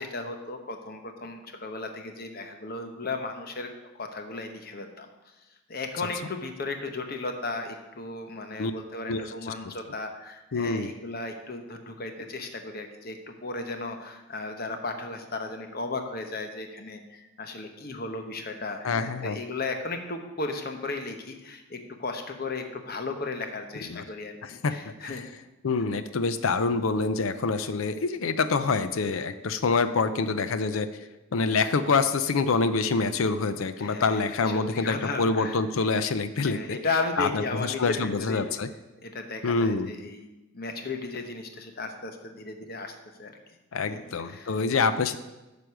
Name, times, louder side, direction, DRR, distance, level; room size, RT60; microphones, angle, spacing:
voice 1, 0.0-5.1 5.7-25.2 33.8-34.4 34.7-35.6 36.4-38.4 39.0-40.3 40.5-43.3 43.9-44.5, left 3 dB, 45° left, 5 dB, 0.9 m, -35 dB
voice 2, 10.5-10.9 18.8-19.4 23.9-24.1 24.4-24.7 25.0-25.3 25.6-30.9 31.3-36.8 37.2-38.7 39.4-39.9 43.7-45.2, left 4 dB, 80° left, 12 dB, 0.5 m, -26 dB
9.3 x 5.1 x 6.2 m, 1.0 s
head